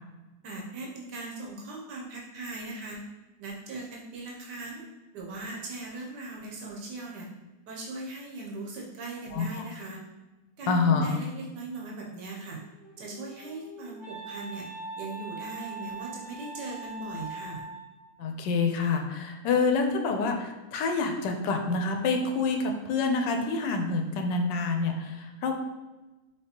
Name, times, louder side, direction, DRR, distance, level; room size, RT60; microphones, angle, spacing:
voice 1, 0.4-3.0 3.4-4.9 5.1-7.3 7.7-10.0 10.6-12.6 13.0-14.7 14.9-17.6, right 2 dB, 80° right, -2 dB, 1.3 m, -39 dB
voice 2, 9.3-9.6 10.7-11.1 18.2-25.5, left 4 dB, 90° left, 4 dB, 1.3 m, -27 dB
Wind instrument woodwind instrument, 12.6-18.1, right 4 dB, 40° right, 0.8 m, -41 dB
4.7 x 3.3 x 2.8 m, 1.1 s
omnidirectional pair, 1.8 m